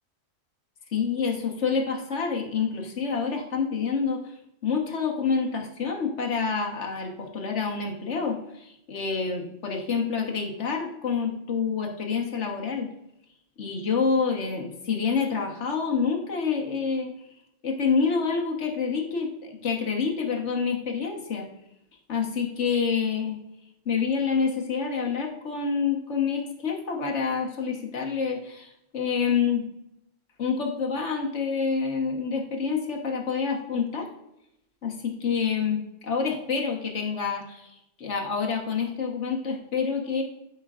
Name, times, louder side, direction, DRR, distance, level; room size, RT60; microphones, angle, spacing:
voice 1, 0.9-4.2 4.6-12.9 13.6-17.1 17.6-21.4 22.1-23.4 23.8-29.6 30.4-34.1 34.8-40.2, left 5 dB, 65° left, 1 dB, 1.5 m, -27 dB
12.5 x 5.5 x 2.4 m, 0.83 s
omnidirectional pair, 1.3 m